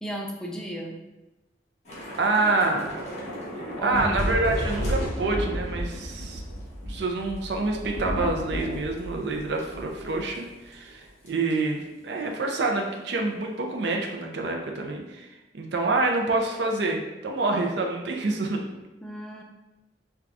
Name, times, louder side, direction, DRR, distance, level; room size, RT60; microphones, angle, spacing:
voice 1, 0.0-1.0 3.8-4.3 19.0-19.4, equal, 5° left, 0 dB, 0.4 m, -34 dB
Thunder / Rain, 1.9-10.4 10.7-10.9 11.3-11.5, equal, 40° left, 1.0 m, -33 dB
voice 2, 2.2-3.0 3.8-6.4 6.9-18.6, right 2 dB, 65° right, 2 dB, 0.5 m, -27 dB
4.6 x 2.2 x 2.5 m, 1.0 s
head